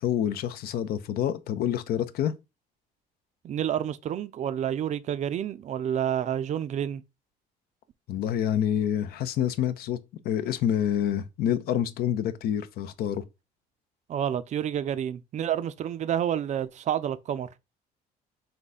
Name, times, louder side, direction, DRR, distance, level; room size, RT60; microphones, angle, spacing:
voice 1, 0.0-2.3 8.1-10.0 10.2-13.2, left 10 dB, 65° left, 0.5 m, -27 dB
voice 2, 3.4-7.0 14.1-17.6, right 9 dB, 45° right, 0.4 m, -29 dB
3.7 x 2.7 x 4.0 m
cardioid pair, 110°, 17 cm